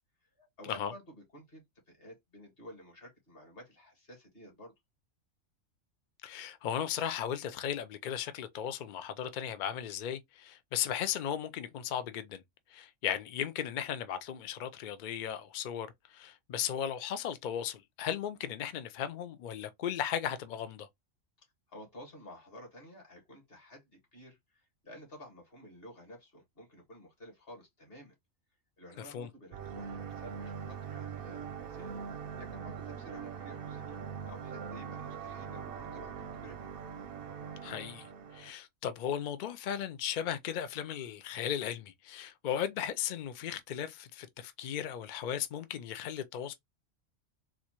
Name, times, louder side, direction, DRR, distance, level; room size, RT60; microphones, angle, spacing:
voice 1, 0.4-4.7 21.7-28.1 28.8-32.1 32.4-34.0 34.2-36.7, equal, 45° left, 1.8 m, -52 dB
voice 2, 6.2-12.4 12.7-20.9 29.1-29.3 37.6-38.1 38.3-46.5, left 9 dB, 85° left, 0.4 m, -36 dB
sound 1, 29.5-38.5, right 7 dB, 60° right, 0.7 m, -42 dB
4.1 x 2.4 x 2.9 m
omnidirectional pair, 1.4 m